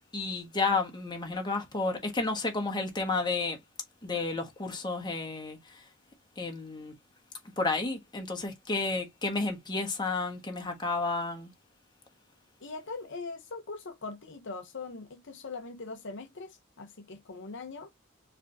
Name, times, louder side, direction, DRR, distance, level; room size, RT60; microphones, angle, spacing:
voice 1, 0.1-3.6 4.0-5.8 6.4-6.9 7.6-11.5, left 3 dB, 20° left, 1.4 m, -31 dB
voice 2, 12.6-17.9, left 3 dB, 60° left, 0.8 m, -41 dB
4.9 x 3.5 x 2.6 m
head